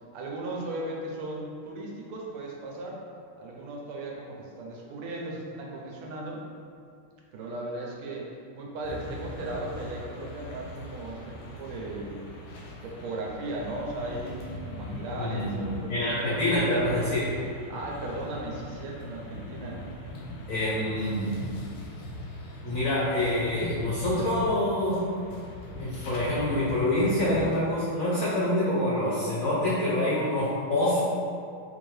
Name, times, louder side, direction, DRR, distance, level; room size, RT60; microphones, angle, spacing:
voice 1, 0.1-3.0 3.4-6.4 7.3-8.3 8.5-12.3 12.8-16.3 17.7-19.8, right 2 dB, 90° right, -2 dB, 1.5 m, -37 dB
sound 1, 8.8-27.6, left 1 dB, 90° left, 1.6 m, -40 dB
voice 2, 15.2-15.6 15.9-17.3 20.5-21.4 22.6-25.1 25.8-31.0, left 1 dB, 70° left, -8 dB, 0.8 m, -26 dB
4.1 x 2.7 x 3.1 m, 2.3 s
omnidirectional pair, 2.4 m